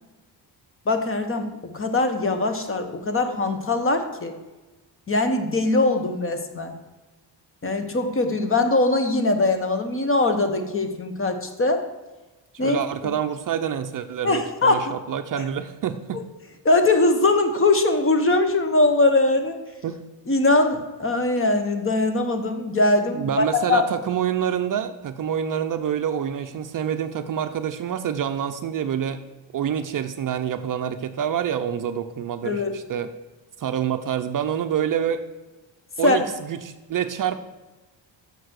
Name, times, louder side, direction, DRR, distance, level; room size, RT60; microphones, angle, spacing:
voice 1, 0.9-4.3 5.1-6.7 7.6-11.9 12.6-12.8 14.2-14.9 15.4-15.5 16.1-16.2 16.6-19.6 20.3-23.8 32.4-32.7 36.0-36.2, left 2 dB, 30° left, 8 dB, 1.0 m, -21 dB
voice 2, 12.6-16.2 19.8-20.0 23.1-29.2 29.5-33.1 33.6-35.2 36.0-37.4, right 9 dB, 45° right, 9 dB, 0.5 m, -27 dB
6.7 x 6.6 x 6.4 m, 1.2 s
cardioid pair, 120°, 46 cm